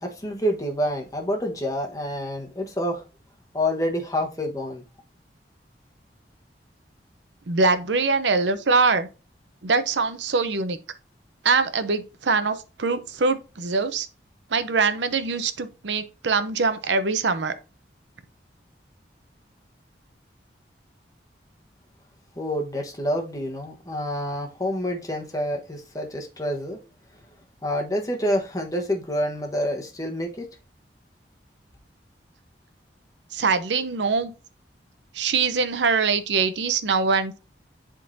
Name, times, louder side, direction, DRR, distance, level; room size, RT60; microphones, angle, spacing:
voice 1, 0.0-3.0 3.5-4.8 22.4-26.8 27.6-30.5, equal, 20° left, 1.1 m, -27 dB
voice 2, 7.5-9.1 9.6-10.8 11.4-14.1 14.5-17.5 33.3-34.3 35.1-37.4, right 4 dB, 90° right, 0.7 m, -23 dB
10.5 x 3.7 x 2.7 m
head